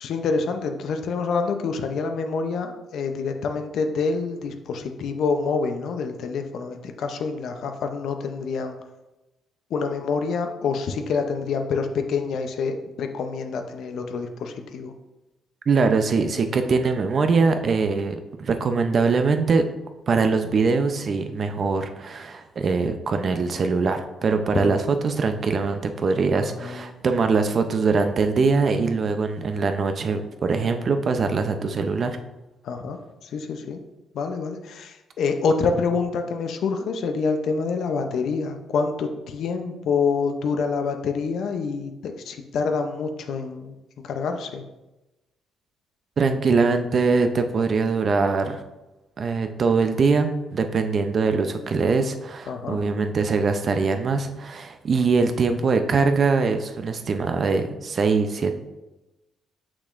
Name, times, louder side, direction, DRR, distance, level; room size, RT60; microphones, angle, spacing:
voice 1, 0.0-8.8 9.7-14.9 24.5-24.8 26.4-26.9 32.6-33.8 34.1-43.7 44.0-44.6 52.5-52.8, left 5 dB, 70° left, 6 dB, 0.6 m, -27 dB
voice 2, 15.7-19.6 20.1-32.2 46.2-48.6 49.2-58.5, right 4 dB, 50° right, 7 dB, 0.6 m, -22 dB
6.4 x 5.9 x 2.5 m, 1.0 s
cardioid pair, 90°, 0 cm